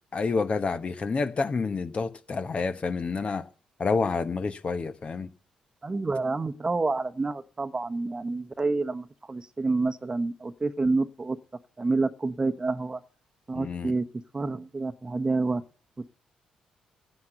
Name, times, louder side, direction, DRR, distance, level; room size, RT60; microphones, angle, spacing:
voice 1, 0.1-3.5 3.8-5.3 13.5-13.9, left 4 dB, 45° left, 1.1 m, -28 dB
voice 2, 5.8-11.4 11.8-13.0 13.5-14.1 14.3-15.6, right 3 dB, 30° right, 1.0 m, -28 dB
10.0 x 9.6 x 7.9 m
hypercardioid pair, 45°, 3 cm